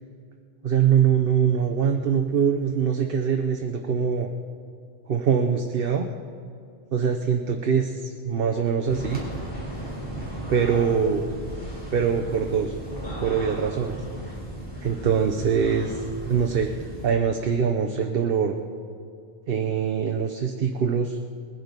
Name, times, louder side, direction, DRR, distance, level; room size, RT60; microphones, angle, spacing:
voice 1, 0.6-4.3 5.1-6.1 6.9-9.2 10.5-11.2 11.9-12.8 13.2-14.0 14.8-16.7 17.0-18.6 19.5-21.2, right 7 dB, 65° right, 4 dB, 1.0 m, -23 dB
sound 1, 8.9-17.1, right 1 dB, 25° left, 3.9 m, -36 dB
20.5 x 10.0 x 5.2 m, 2.4 s
omnidirectional pair, 1.0 m